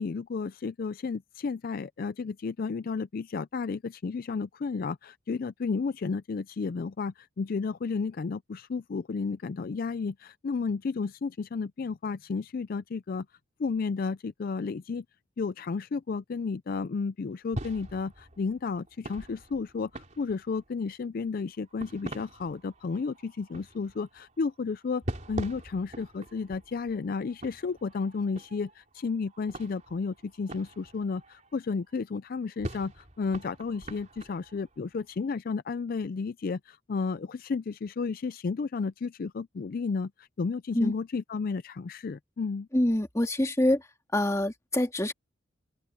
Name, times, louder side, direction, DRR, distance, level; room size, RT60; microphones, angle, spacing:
voice 1, 0.0-13.3 13.6-15.0 15.4-25.0 25.3-42.7, left 4 dB, 50° left, 0.4 m, -32 dB
sound 1, 17.5-20.7 21.5-32.0 32.4-35.3, right 1 dB, 40° right, 3.6 m, -43 dB
voice 2, 42.7-43.9 44.1-45.1, left 1 dB, 15° left, 1.8 m, -25 dB
open air
head